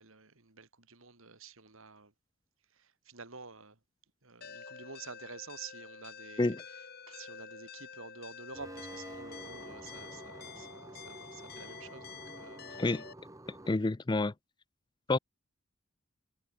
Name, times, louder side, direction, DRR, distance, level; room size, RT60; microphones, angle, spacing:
voice 1, 0.0-2.1 2.7-3.8 4.2-12.8, right 4 dB, 70° right, 2.7 m, -50 dB
sound 1, 4.4-13.1, left 6 dB, 45° left, 7.5 m, -49 dB
sound 2, 8.5-13.8, right 1 dB, 15° right, 1.3 m, -49 dB
voice 2, 13.7-14.3 15.1-15.2, left 2 dB, 20° left, 0.4 m, -28 dB
head